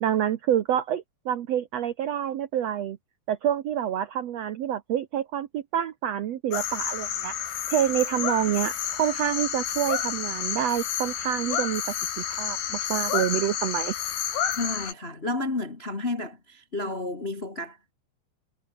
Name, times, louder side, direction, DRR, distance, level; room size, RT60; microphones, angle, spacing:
voice 1, 0.0-3.0 3.3-7.3 7.7-11.8 12.2-13.9, right 10 dB, 90° right, 1.4 m, -27 dB
sound 1, 6.5-14.9, left 9 dB, 65° left, 4.2 m, -30 dB
voice 2, 14.5-17.9, left 2 dB, 40° left, 0.8 m, -31 dB
omnidirectional pair, 4.6 m